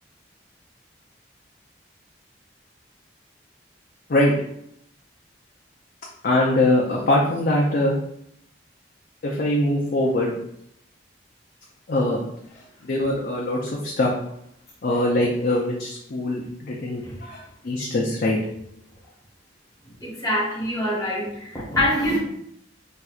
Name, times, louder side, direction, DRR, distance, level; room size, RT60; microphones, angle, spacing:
voice 1, 6.2-8.0 9.2-10.3 11.9-12.2 12.8-14.1 14.8-18.4, left 1 dB, 55° left, -3 dB, 0.5 m, -22 dB
voice 2, 20.0-22.2, equal, 20° left, -5 dB, 0.9 m, -24 dB
4.3 x 2.5 x 2.3 m, 0.74 s
head